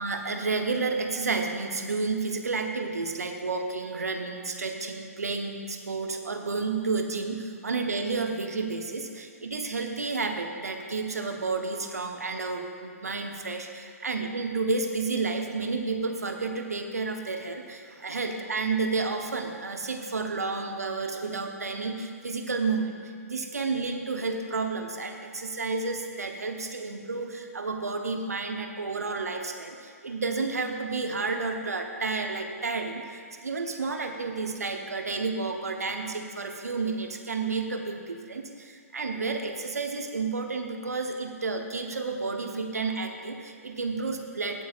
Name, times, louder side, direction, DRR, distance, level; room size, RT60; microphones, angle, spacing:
voice 1, 0.0-23.0 23.2-44.6, right 4 dB, 70° right, 4 dB, 1.0 m, -31 dB
17.0 x 8.4 x 2.4 m, 2.1 s
figure-of-eight pair, 125°, 9 cm